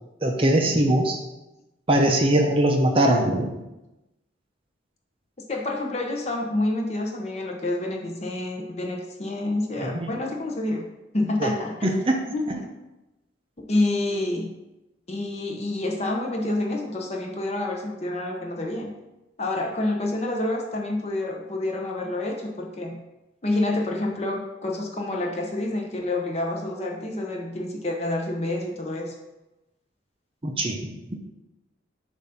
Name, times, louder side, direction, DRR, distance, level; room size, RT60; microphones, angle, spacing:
voice 1, 0.2-1.2 1.9-3.5 9.8-10.1 11.4-11.5 11.8-12.2 12.5-12.6 30.4-30.8, right 1 dB, 30° right, 2 dB, 0.6 m, -21 dB
voice 2, 5.5-10.8 11.1-11.9 12.3-12.7 13.6-14.5 15.1-18.9 19.4-23.0 23.4-29.1, left 2 dB, 35° left, 1 dB, 0.8 m, -28 dB
7.1 x 2.6 x 5.7 m, 0.99 s
head